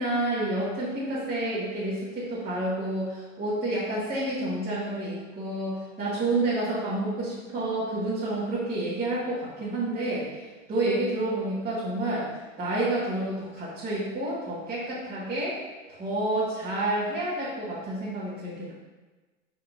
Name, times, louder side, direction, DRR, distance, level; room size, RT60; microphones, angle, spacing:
voice 1, 0.0-10.3 10.7-12.3 12.6-15.6 16.0-18.7, right 1 dB, 25° right, -9 dB, 2.0 m, -29 dB
11.5 x 4.2 x 2.7 m, 1.2 s
hypercardioid pair, 100°, 38 cm